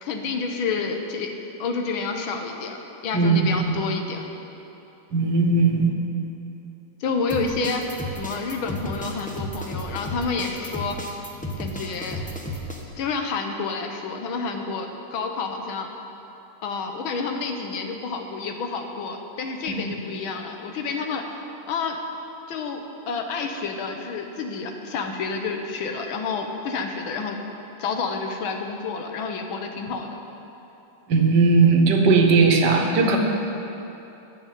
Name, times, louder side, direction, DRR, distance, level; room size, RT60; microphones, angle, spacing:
voice 1, 0.0-1.3 1.6-2.8 3.0-4.2 7.0-7.9 8.2-11.0 11.6-12.2 13.0-15.9 16.6-21.2 21.7-22.0 22.5-27.4 27.8-30.1, left 4 dB, 85° left, 4 dB, 1.8 m, -29 dB
voice 2, 3.1-3.5 5.1-5.9 31.1-33.2, right 4 dB, 60° right, 2 dB, 1.7 m, -18 dB
sound 1, 7.3-12.8, equal, 10° left, 0.4 m, -33 dB
11.5 x 6.4 x 9.1 m, 2.9 s
omnidirectional pair, 2.2 m